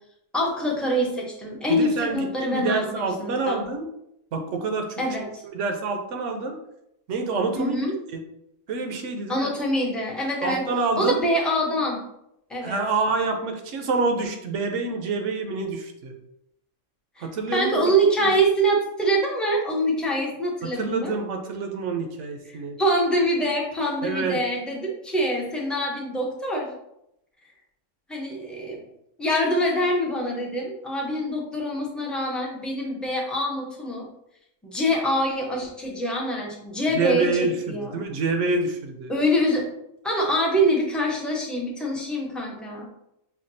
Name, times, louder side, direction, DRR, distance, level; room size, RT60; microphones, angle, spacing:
voice 1, 0.3-3.6 5.0-5.4 7.6-7.9 9.3-10.7 11.0-12.0 12.5-12.8 17.2-21.2 22.8-26.7 28.1-28.8 29.2-34.1 34.6-38.0 39.1-39.7 40.0-42.9, equal, ahead, -3 dB, 0.5 m, -25 dB
voice 2, 1.7-3.8 4.3-5.0 5.4-6.6 7.1-7.8 8.7-9.5 10.4-11.2 12.6-16.1 17.2-17.8 18.2-18.3 20.6-22.8 24.0-24.4 36.9-39.1, right 3 dB, 70° right, 4 dB, 0.9 m, -27 dB
5.7 x 2.3 x 2.6 m, 0.80 s
omnidirectional pair, 1.3 m